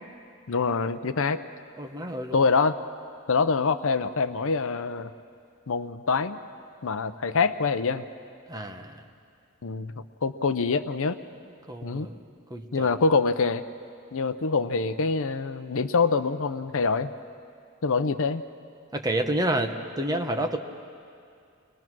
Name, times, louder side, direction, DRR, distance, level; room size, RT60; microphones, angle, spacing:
voice 1, 0.5-1.4 2.3-2.7 3.3-5.1 5.7-6.4 6.8-8.0 9.6-9.9 10.2-11.2 11.8-12.1 12.7-13.6 14.1-17.1 17.8-18.4, left 4 dB, 65° left, 11 dB, 0.7 m, -25 dB
voice 2, 1.8-2.4 8.5-9.0 11.7-12.2 12.5-12.9 18.9-20.6, right 1 dB, 15° right, 5 dB, 1.1 m, -29 dB
29.5 x 21.0 x 6.1 m, 2.4 s
head